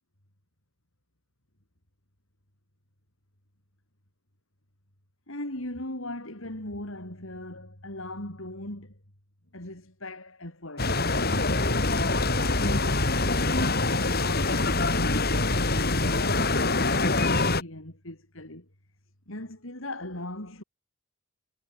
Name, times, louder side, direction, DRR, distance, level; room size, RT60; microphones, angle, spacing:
voice 1, 5.3-9.0 9.5-18.7 19.3-20.6, left 1 dB, 60° left, 5.1 m, -39 dB
sound 1, 10.8-17.6, left 2 dB, 45° left, 3.8 m, -24 dB
head